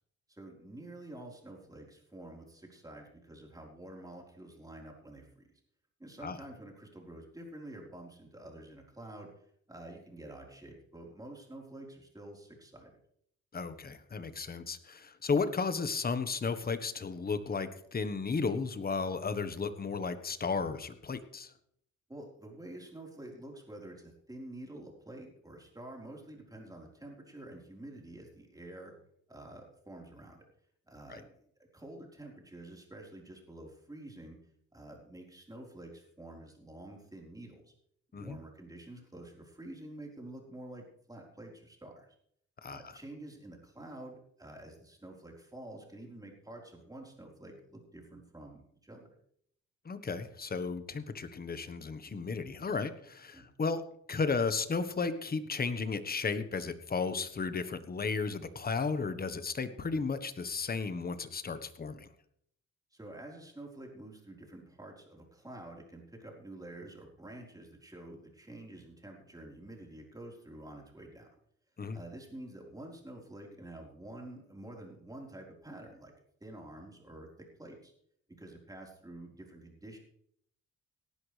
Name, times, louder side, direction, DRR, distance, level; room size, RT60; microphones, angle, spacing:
voice 1, 0.3-5.5 6.0-12.9 22.1-28.9 29.3-30.4 30.9-31.4 31.7-34.4 34.7-37.7 38.1-42.1 42.7-49.1 53.3-53.5 62.9-71.3 71.9-76.1 76.4-77.9 78.4-80.0, right 1 dB, 10° right, 0 dB, 4.3 m, -48 dB
voice 2, 13.5-21.5 31.1-31.2 38.1-38.4 42.6-42.8 49.8-53.8 54.1-62.1 71.8-72.0, left 4 dB, 30° left, 11 dB, 1.3 m, -34 dB
18.0 x 11.0 x 3.4 m, 0.68 s
cardioid pair, 90°, 30 cm